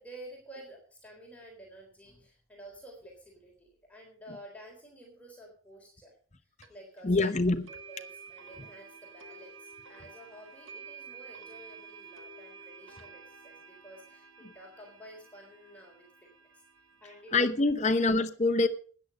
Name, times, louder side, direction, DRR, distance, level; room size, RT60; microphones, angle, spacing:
voice 1, 0.0-6.1 6.7-7.4 7.7-16.0 17.0-17.3 17.8-18.0, right 1 dB, 5° left, 3.7 m, -51 dB
sound 1, 6.6-6.7 7.7-17.7, right 5 dB, 60° right, 1.5 m, -51 dB
voice 2, 7.0-7.7 17.3-18.7, left 3 dB, 35° left, 0.9 m, -25 dB
13.5 x 9.4 x 5.3 m
head